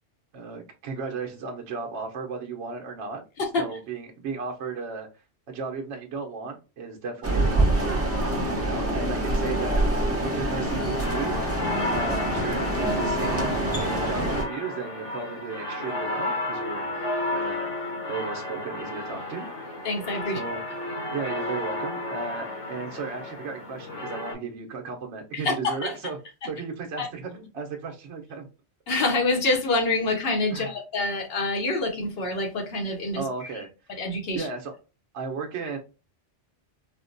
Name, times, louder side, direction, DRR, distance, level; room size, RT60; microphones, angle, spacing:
voice 1, 0.3-3.2 3.6-8.0 8.5-9.9 10.2-11.6 11.9-16.9 17.3-19.5 20.4-26.2 26.4-28.5 30.5-30.7 33.1-33.7 34.3-34.7 35.1-35.8, right 4 dB, 75° right, 1.0 m, -35 dB
voice 2, 3.4-3.8 19.8-20.4 25.3-26.0 26.4-26.5 27.0-27.1 28.9-33.6 33.9-34.5, left 2 dB, 60° left, 1.0 m, -27 dB
sound 1, 7.2-14.5, right 1 dB, 15° right, 0.6 m, -26 dB
sound 2, 10.6-24.3, left 2 dB, 80° left, 1.4 m, -32 dB
4.4 x 2.1 x 2.5 m
omnidirectional pair, 1.2 m